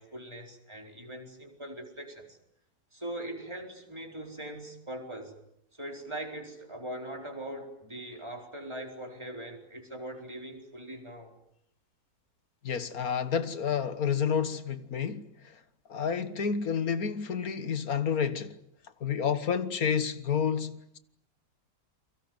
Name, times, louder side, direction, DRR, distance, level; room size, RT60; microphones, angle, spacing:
voice 1, 0.0-2.4 2.9-5.4 5.7-11.3, right 1 dB, 20° right, 4.4 m, -41 dB
voice 2, 12.6-15.3 15.9-18.6 19.0-21.0, left 7 dB, 75° left, 1.9 m, -29 dB
29.5 x 23.5 x 7.9 m
omnidirectional pair, 1.5 m